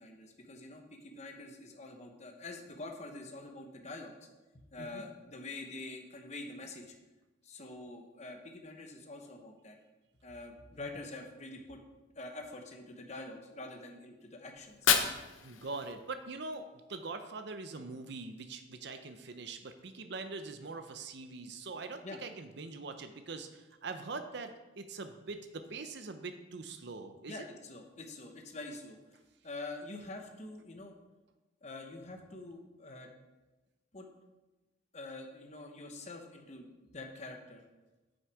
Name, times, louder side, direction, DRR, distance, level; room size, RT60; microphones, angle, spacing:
voice 1, 0.0-4.2 4.5-6.9 7.4-9.8 10.2-11.8 12.1-14.9 22.0-22.2 27.3-29.0 29.4-31.0 31.6-33.1 33.9-34.1 34.9-37.6, left 2 dB, 35° left, 3 dB, 1.0 m, -46 dB
Fire, 14.6-16.6, left 8 dB, 80° left, 0.8 m, -32 dB
voice 2, 15.4-27.5, right 3 dB, 60° right, 7 dB, 0.7 m, -43 dB
8.0 x 6.5 x 4.8 m, 1.1 s
head